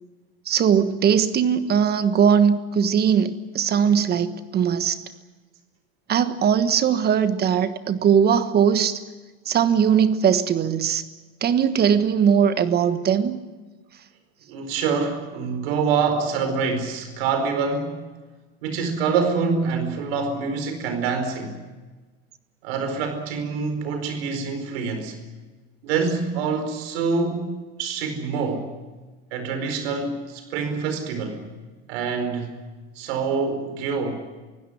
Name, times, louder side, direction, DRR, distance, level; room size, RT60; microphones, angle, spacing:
voice 1, 0.5-5.0 6.1-9.0 9.5-11.0 11.4-13.4, right 7 dB, 30° right, 1.3 m, -20 dB
voice 2, 14.5-18.0 18.6-21.6 22.6-25.2 25.8-28.7 29.3-31.4 31.9-32.5 33.0-34.3, right 5 dB, 75° right, 4.7 m, -26 dB
24.0 x 16.5 x 10.0 m
supercardioid pair, 125°, 30 cm